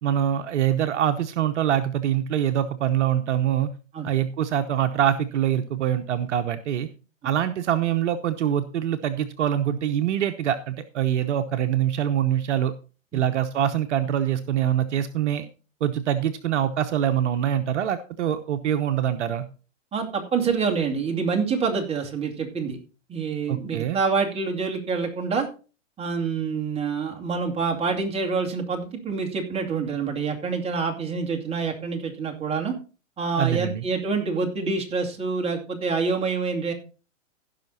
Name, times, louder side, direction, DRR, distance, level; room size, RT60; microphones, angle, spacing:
voice 1, 0.0-3.7 4.0-6.9 7.2-12.7 13.1-15.5 15.8-19.4 23.5-24.0 33.4-33.8, right 10 dB, 65° right, 8 dB, 1.0 m, -24 dB
voice 2, 19.9-22.8 23.1-25.5 26.0-32.7 33.2-36.7, right 5 dB, 15° right, 1 dB, 2.3 m, -26 dB
16.0 x 5.8 x 4.1 m, 0.34 s
hypercardioid pair, 130°, 39 cm